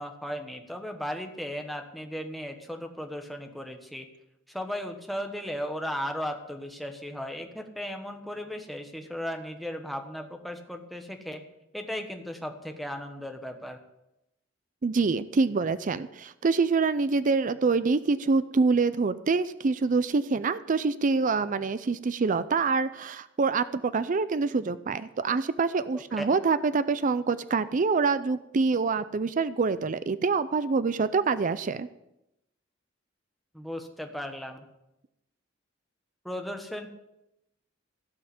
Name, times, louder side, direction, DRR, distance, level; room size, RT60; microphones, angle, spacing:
voice 1, 0.0-4.1 4.5-11.4 11.7-13.8 26.2-26.4 33.5-34.6 36.2-36.9, equal, ahead, 4 dB, 1.3 m, -36 dB
voice 2, 14.8-31.9, right 4 dB, 40° right, 14 dB, 0.4 m, -26 dB
16.0 x 5.6 x 7.8 m, 0.88 s
head